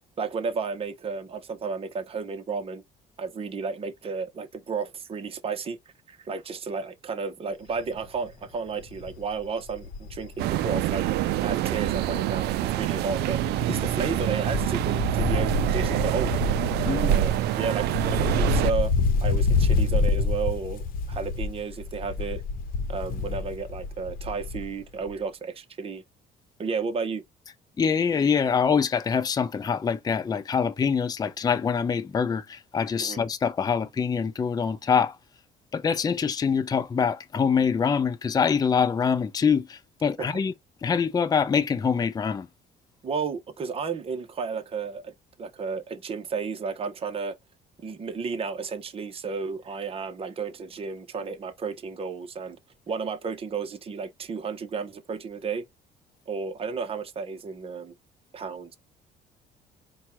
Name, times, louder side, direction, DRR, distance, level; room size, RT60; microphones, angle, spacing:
voice 1, 0.2-2.8 3.2-5.8 6.1-11.0 11.4-16.4 16.8-18.9 19.2-22.4 22.9-26.0 26.6-27.2 33.0-33.2 40.2-40.3 43.0-47.4 47.8-52.6 52.9-55.6 56.3-57.9 58.3-58.8, right 5 dB, 35° right, 0.9 m, -32 dB
Wind, 7.8-8.0 8.4-8.5 8.8-12.3 12.6-24.8 25.1-25.2, left 4 dB, 55° left, 0.9 m, -28 dB
sound 1, 10.4-18.7, right 13 dB, 75° right, 0.4 m, -26 dB
voice 2, 27.8-35.2 35.7-40.5 40.8-42.5, left 6 dB, 25° left, 0.5 m, -24 dB
4.4 x 2.3 x 4.3 m
cardioid pair, 110°, 17 cm